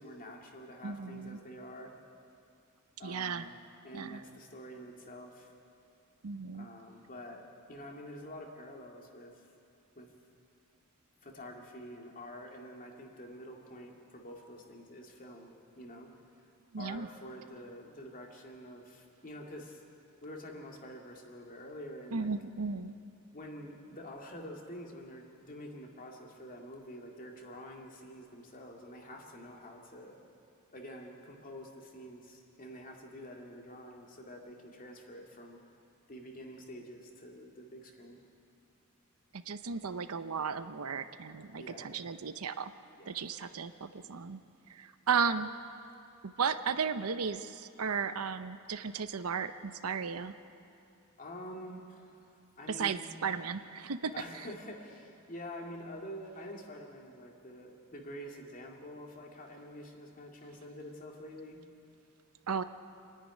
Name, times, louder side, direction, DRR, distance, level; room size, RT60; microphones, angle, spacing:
voice 1, 0.0-1.9 3.0-3.5 3.8-5.5 6.5-9.5 10.0-10.1 11.2-16.1 16.4-16.5 16.8-19.8 20.2-22.3 23.3-30.2 30.7-35.6 36.1-38.2 41.5-41.9 42.9-43.5 51.2-53.0 54.1-61.6, equal, 40° left, 0 dB, 2.4 m, -47 dB
voice 2, 0.8-1.4 3.0-3.5 3.9-4.2 6.2-6.7 16.7-17.1 22.1-22.9 39.5-42.7 43.1-44.4 44.7-45.5 46.2-50.4 52.8-54.1 62.5-62.6, right 6 dB, 80° right, 11 dB, 0.7 m, -35 dB
27.0 x 10.5 x 9.7 m, 2.6 s
head